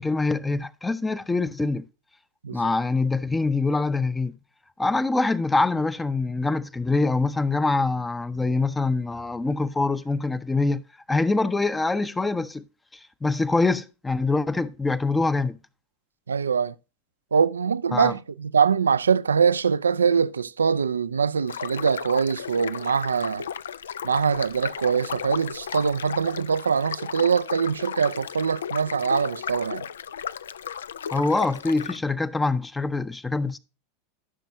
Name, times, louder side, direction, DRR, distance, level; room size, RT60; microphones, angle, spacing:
voice 1, 0.0-1.9 2.5-4.3 4.8-10.8 11.1-12.6 13.2-15.6 17.9-18.1 31.1-33.6, left 3 dB, 10° left, 0.6 m, -24 dB
voice 2, 16.3-16.7 17.3-23.4 24.0-29.8, right 6 dB, 80° right, 0.3 m, -23 dB
sound 1, 21.5-32.0, left 8 dB, 75° left, 0.3 m, -35 dB
13.5 x 6.2 x 2.6 m
figure-of-eight pair, 85°, 0 cm